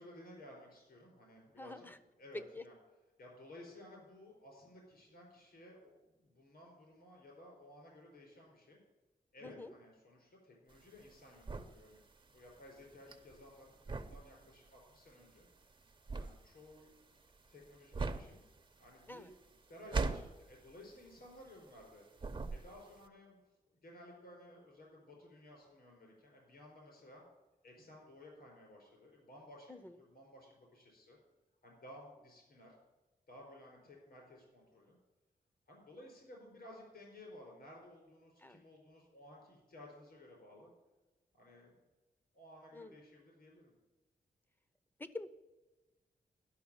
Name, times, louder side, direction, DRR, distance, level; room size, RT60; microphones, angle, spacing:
voice 1, 0.0-1.8 2.2-2.8 3.2-8.8 9.3-12.0 12.3-15.5 16.2-16.9 17.5-18.4 18.8-19.3 19.7-22.0 22.5-23.4 23.7-27.2 27.6-29.7 30.0-31.2 31.6-32.8 33.3-35.0 35.7-40.7 41.3-41.8 42.3-43.7, left 1 dB, 75° left, -1 dB, 4.7 m, -56 dB
voice 2, 1.6-2.0 2.3-2.6 9.4-9.7 19.1-19.3 29.7-29.9 38.4-38.6 42.7-42.9 45.0-45.3, left 2 dB, 10° left, 12 dB, 0.7 m, -46 dB
sound 1, 10.7-21.9 22.2-23.0, right 3 dB, 30° right, 0.8 m, -41 dB
11.5 x 6.0 x 8.8 m, 1.1 s
wide cardioid pair, 115°, 16 cm